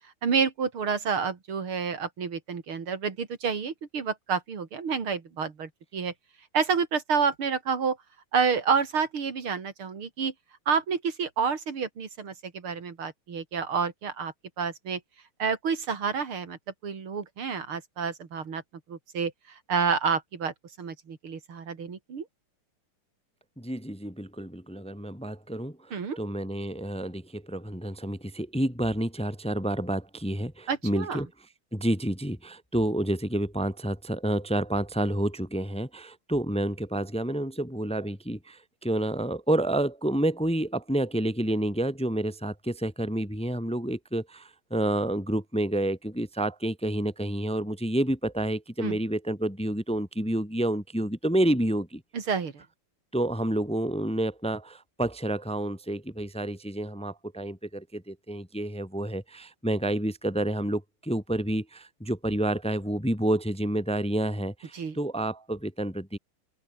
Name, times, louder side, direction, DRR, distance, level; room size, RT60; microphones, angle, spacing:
voice 1, 0.2-6.1 6.5-8.0 8.3-10.3 10.7-15.0 15.4-18.6 18.9-19.3 19.7-22.3 25.9-26.2 30.7-31.2 48.8-49.0 52.1-52.6 64.7-65.0, right 6 dB, 75° right, 3.5 m, -29 dB
voice 2, 23.6-31.3 31.7-52.0 53.1-66.2, right 1 dB, 5° left, 1.7 m, -29 dB
open air
omnidirectional pair, 2.3 m